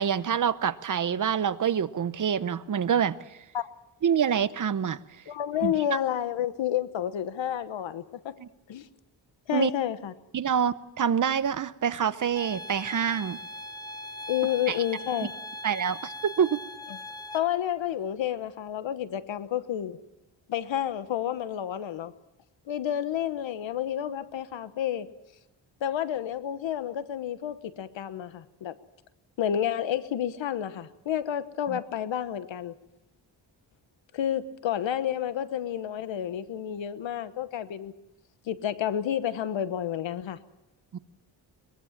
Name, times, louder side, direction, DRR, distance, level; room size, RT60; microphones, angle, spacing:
voice 1, 0.0-3.2 4.0-5.0 5.6-5.7 8.4-8.5 9.5-9.7 10.3-13.4 14.7-14.8 15.6-16.6 31.7-31.8 40.9-41.0, right 8 dB, 45° right, 14 dB, 0.9 m, -26 dB
voice 2, 5.3-8.4 8.7-8.9 9.5-10.1 14.3-15.3 17.3-20.0 20.5-22.1 22.7-25.1 25.8-28.7 29.4-32.7 34.1-37.9 38.5-40.4, left 10 dB, 85° left, 13 dB, 1.2 m, -30 dB
sound 1, 12.4-17.4, left 1 dB, 10° left, 1.2 m, -40 dB
22.5 x 21.5 x 7.3 m, 0.89 s
wide cardioid pair, 150°, 45 cm